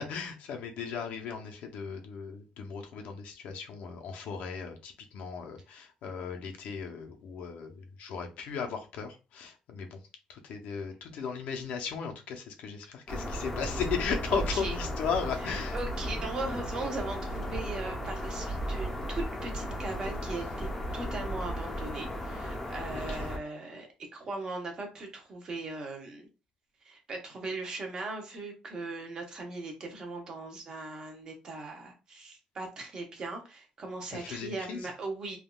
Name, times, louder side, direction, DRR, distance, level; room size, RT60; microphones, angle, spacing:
voice 1, 0.0-10.0 10.3-15.8 22.9-23.3 34.1-34.9, left 6 dB, 70° left, 0.6 m, -36 dB
sound 1, 13.1-23.4, equal, 15° left, 0.6 m, -35 dB
voice 2, 14.3-14.7 15.4-26.3 26.8-35.4, right 3 dB, 35° right, 0.7 m, -39 dB
3.4 x 2.3 x 2.2 m
cardioid pair, 170°, 2 cm